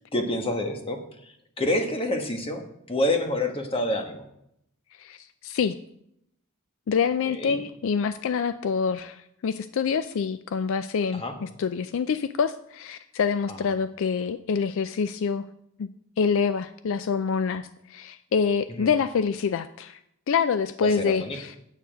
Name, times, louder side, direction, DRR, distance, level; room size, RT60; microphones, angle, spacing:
voice 1, 0.1-1.0 1.6-4.2 7.2-7.6 11.1-11.4 13.5-13.6 18.7-18.9 20.8-21.4, left 1 dB, 25° left, 4 dB, 1.2 m, -28 dB
voice 2, 5.0-5.7 6.9-15.5 15.8-15.9 16.2-20.0 20.3-21.5, left 6 dB, 65° left, 12 dB, 0.4 m, -26 dB
9.2 x 8.2 x 5.0 m, 0.77 s
head